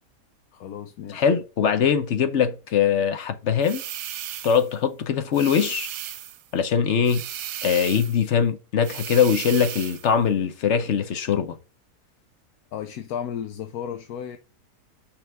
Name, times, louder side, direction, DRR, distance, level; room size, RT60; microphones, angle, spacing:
voice 1, 0.5-1.3 12.7-14.4, left 8 dB, 80° left, 1.2 m, -34 dB
voice 2, 1.1-3.8 4.4-5.9 6.5-7.2 7.6-11.5, left 7 dB, 55° left, 1.0 m, -22 dB
sound 1, 3.6-4.7 5.3-6.4 7.1-8.2 8.8-10.1, right 11 dB, 70° right, 1.0 m, -35 dB
5.8 x 3.5 x 5.9 m
omnidirectional pair, 1.6 m